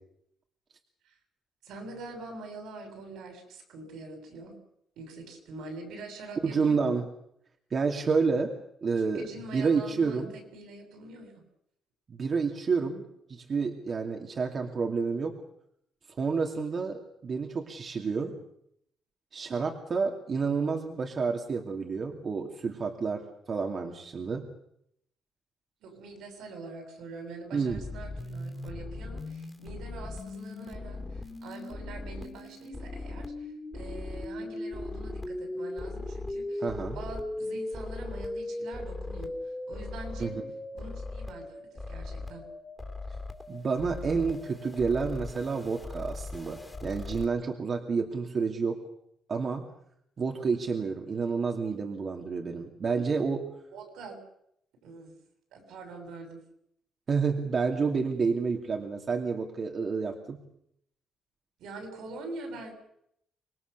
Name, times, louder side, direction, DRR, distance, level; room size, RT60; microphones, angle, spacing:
voice 1, 1.6-4.6 5.0-7.0 8.9-11.4 25.8-40.4 40.7-42.4 53.7-54.2 54.8-55.2 55.5-56.4 61.6-62.7, right 2 dB, 85° right, 5 dB, 7.5 m, -44 dB
voice 2, 6.4-7.0 7.7-8.5 8.8-9.3 9.5-10.3 12.1-13.0 13.3-15.3 16.2-18.4 19.3-24.5 27.5-27.8 36.6-37.0 40.2-40.4 43.5-48.8 49.3-49.6 50.2-53.5 57.1-60.4, right 5 dB, 45° right, 2 dB, 2.7 m, -29 dB
sound 1, 27.7-47.2, left 2 dB, 10° left, 3.4 m, -38 dB
26.0 x 20.5 x 6.9 m, 0.73 s
cardioid pair, 90°, 0 cm